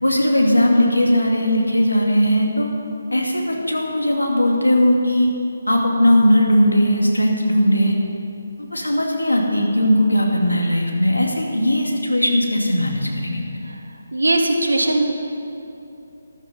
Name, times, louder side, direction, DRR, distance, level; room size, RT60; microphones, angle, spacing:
voice 1, 0.0-2.7 3.1-5.3 5.7-8.0 8.7-13.4, equal, 90° left, 0 dB, 2.4 m, -18 dB
voice 2, 14.1-15.1, right 2 dB, 75° right, 2 dB, 1.8 m, -19 dB
13.5 x 12.0 x 5.3 m, 2.8 s
figure-of-eight pair, 150°, 0 cm